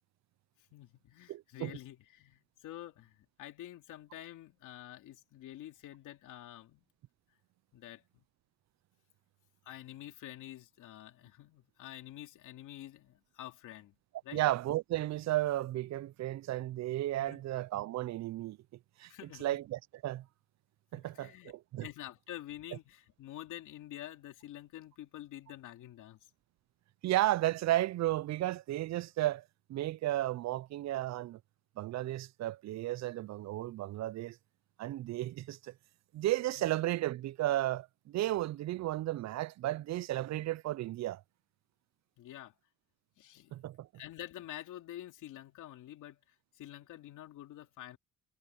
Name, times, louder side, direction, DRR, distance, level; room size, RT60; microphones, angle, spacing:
voice 1, 0.7-6.8 7.7-8.2 9.6-13.9 14.2-14.4 17.2-17.4 19.1-19.5 20.9-21.5 21.8-26.2 36.6-36.7 42.2-42.5 43.2-43.7 43.9-46.2 46.5-48.0, left 13 dB, 85° left, 2.8 m, -48 dB
voice 2, 1.3-1.7 14.3-18.6 19.0-19.1 19.4-20.2 20.9-21.9 27.0-29.4 29.7-31.4 31.8-34.4 34.8-35.7 36.1-41.2 43.5-43.9, right 15 dB, 65° right, 0.5 m, -33 dB
cardioid pair, 90°, 30 cm